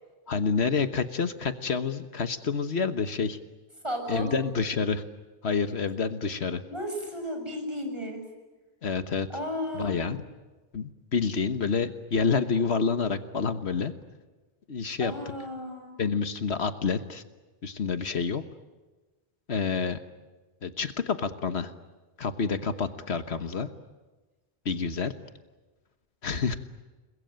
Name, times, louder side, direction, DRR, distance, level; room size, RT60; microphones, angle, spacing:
voice 1, 0.3-3.4 4.1-5.0 5.4-6.6 8.8-9.3 9.7-10.2 10.7-13.9 14.7-15.1 16.0-17.2 17.6-18.4 19.5-20.0 20.6-21.7 22.2-23.7 24.6-25.1 26.2-26.6, left 5 dB, 70° left, 10 dB, 1.5 m, -28 dB
voice 2, 3.8-4.3 6.6-8.2 9.3-10.0 15.0-16.0, equal, 25° right, 3 dB, 6.9 m, -34 dB
30.0 x 21.5 x 9.0 m, 1.2 s
omnidirectional pair, 1.1 m